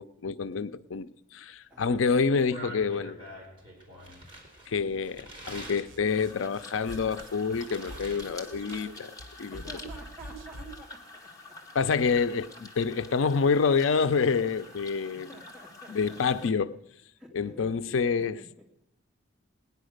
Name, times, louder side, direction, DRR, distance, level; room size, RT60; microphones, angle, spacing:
voice 1, 0.0-3.2 4.7-9.6 11.7-15.3 15.9-16.8 17.3-18.4, left 5 dB, 80° left, 0.5 m, -27 dB
voice 2, 1.7-2.2 9.5-11.6 15.1-16.2 17.2-18.6, equal, 5° right, 2.3 m, -50 dB
sound 1, 2.2-5.9 6.4-8.2 8.5-9.1, right 1 dB, 25° right, 3.8 m, -45 dB
sound 2, 5.5-10.9, right 2 dB, 65° right, 0.8 m, -46 dB
sound 3, 6.1-16.5, left 2 dB, 20° left, 2.0 m, -48 dB
18.5 x 10.5 x 6.5 m
head